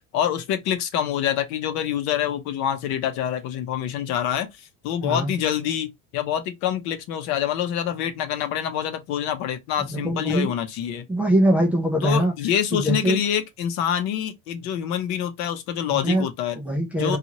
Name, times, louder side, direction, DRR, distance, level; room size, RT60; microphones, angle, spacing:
voice 1, 0.1-11.0 12.0-16.6 17.0-17.2, left 10 dB, 65° left, 0.7 m, -26 dB
voice 2, 9.8-10.5 11.1-12.3 12.7-13.2 16.0-16.3 16.6-17.2, right 1 dB, 5° right, 0.3 m, -22 dB
2.7 x 2.4 x 2.9 m
cardioid pair, 170°, 31 cm